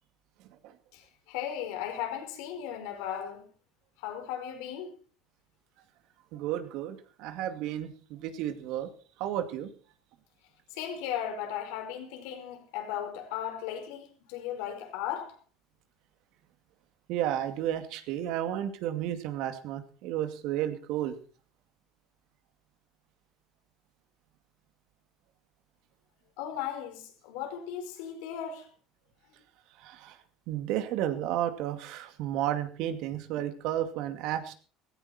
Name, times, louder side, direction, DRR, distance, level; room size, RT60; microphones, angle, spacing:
voice 1, 0.9-3.5 4.0-4.9 10.7-15.4 26.4-28.7, left 9 dB, 80° left, 4.8 m, -36 dB
voice 2, 6.3-8.9 9.2-9.7 17.1-21.2 29.8-30.2 30.5-34.5, right 11 dB, 70° right, 2.3 m, -32 dB
16.5 x 15.5 x 4.4 m
cardioid pair, 120°, 0 cm